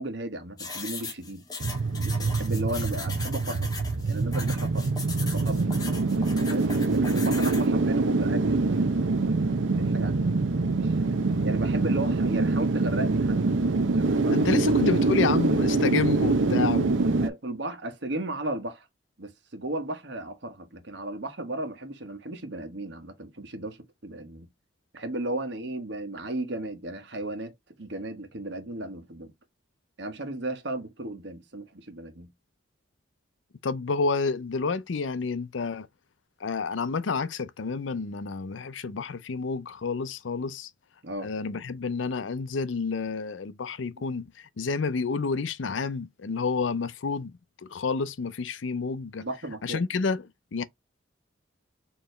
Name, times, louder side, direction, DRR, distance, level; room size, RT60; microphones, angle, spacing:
voice 1, 0.0-1.4 2.0-3.7 4.0-5.0 5.3-5.8 6.5-8.9 9.8-10.3 10.8-11.2 11.4-13.4 14.0-14.6 17.2-18.9 19.2-24.5 24.9-27.5 27.8-29.3 30.0-32.3 41.0-41.3 49.2-49.8, right 1 dB, 65° right, 1.2 m, -35 dB
sound 1, 0.6-7.7, left 3 dB, 20° left, 1.1 m, -39 dB
sound 2, 1.6-17.3, right 3 dB, 85° right, 0.7 m, -24 dB
voice 2, 14.3-17.0 33.6-35.9 36.4-40.7 41.2-47.3 47.7-49.3 49.6-50.2 50.5-50.6, left 4 dB, 85° left, 0.6 m, -29 dB
4.5 x 3.0 x 3.2 m
head